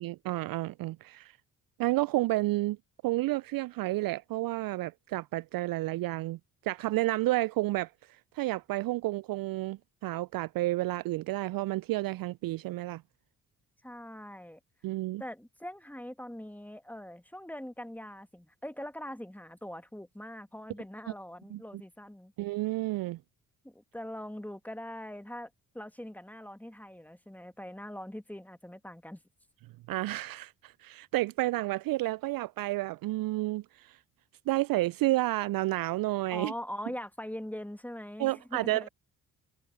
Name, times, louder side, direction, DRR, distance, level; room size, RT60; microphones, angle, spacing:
voice 1, 0.0-1.4 1.8-2.8 3.0-13.0 14.8-15.2 21.5-21.6 22.4-23.2 29.9-34.0 34.5-36.5 38.2-38.9, right 18 dB, 55° right, 0.5 m, -31 dB
voice 2, 13.8-14.6 15.2-22.3 23.6-29.2 36.3-38.9, left 1 dB, 5° left, 2.0 m, -42 dB
hypercardioid pair, 40°, 44 cm